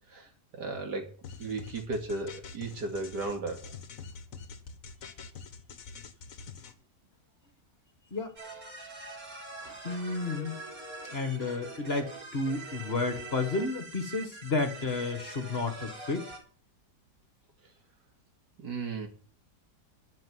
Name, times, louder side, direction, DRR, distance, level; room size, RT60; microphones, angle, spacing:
voice 1, 0.6-1.1 1.4-3.6 10.0-10.1 18.6-19.1, right 3 dB, 75° right, 3 dB, 3.0 m, -35 dB
sound 1, 1.2-6.7, left 5 dB, 55° left, 1.5 m, -45 dB
sound 2, 8.4-16.4, right 2 dB, 55° right, 3.7 m, -44 dB
voice 2, 9.6-10.5 11.1-16.3, left 3 dB, 40° left, 7 dB, 1.7 m, -32 dB
12.0 x 5.9 x 9.2 m, 0.42 s
omnidirectional pair, 1.8 m